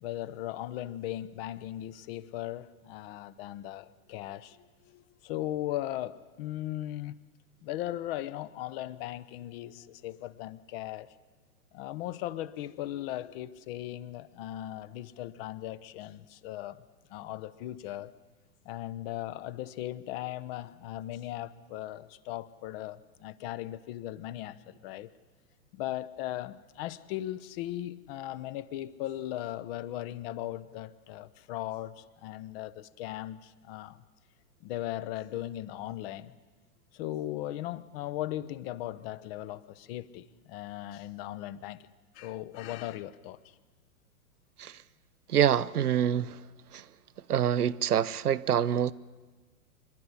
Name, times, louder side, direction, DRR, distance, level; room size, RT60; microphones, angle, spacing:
voice 1, 0.0-7.2 7.6-11.1 11.7-16.8 17.1-18.1 18.6-25.1 25.7-34.0 34.6-36.3 36.9-41.9 42.1-43.4, left 14 dB, 40° left, 0.9 m, -38 dB
voice 2, 45.3-46.3 46.7-46.8 47.3-48.9, right 9 dB, 85° right, 0.7 m, -26 dB
25.5 x 11.5 x 9.7 m
hypercardioid pair, 110°, 44 cm